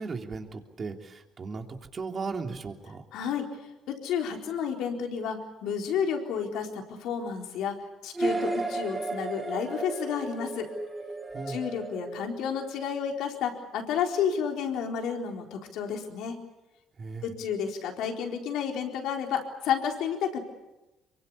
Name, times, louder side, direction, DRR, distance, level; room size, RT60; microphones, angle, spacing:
voice 1, 0.0-3.0 11.3-11.6 17.0-17.3, right 4 dB, 45° right, 4 dB, 3.5 m, -36 dB
voice 2, 3.1-3.5 3.9-7.8 8.0-10.7 11.5-16.4 17.2-20.4, left 7 dB, 75° left, 3 dB, 4.2 m, -31 dB
sound 1, 8.2-13.0, right 2 dB, 20° right, 6.0 m, -34 dB
24.0 x 23.5 x 8.5 m, 1.0 s
supercardioid pair, 65°, 0 cm